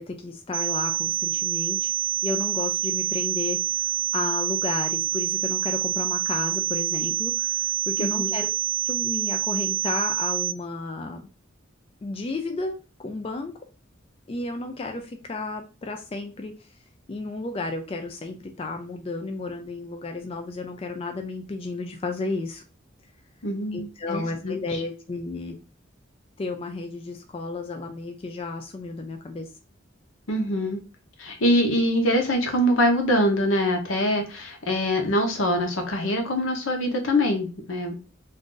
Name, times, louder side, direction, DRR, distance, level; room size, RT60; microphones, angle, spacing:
voice 1, 0.0-1.9 2.2-8.5 8.9-11.3 12.0-13.6 14.3-16.7 17.1-22.6 23.7-25.6 26.4-29.5, left 3 dB, 30° left, 4 dB, 0.3 m, -33 dB
sound 1, 0.5-10.5, right 11 dB, 65° right, 0.3 m, -26 dB
voice 2, 8.0-8.3 23.4-24.8 30.3-30.8 31.2-37.9, equal, 85° left, 4 dB, 0.8 m, -24 dB
2.6 x 2.4 x 3.7 m, 0.32 s
head